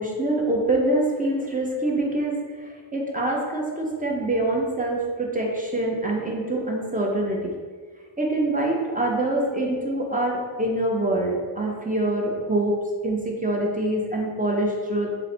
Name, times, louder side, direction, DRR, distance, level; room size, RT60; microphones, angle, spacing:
voice 1, 0.0-7.5 8.2-12.8 13.0-15.1, right 1 dB, 15° right, -2 dB, 0.5 m, -25 dB
3.8 x 2.2 x 4.2 m, 1.5 s
wide cardioid pair, 130°, 49 cm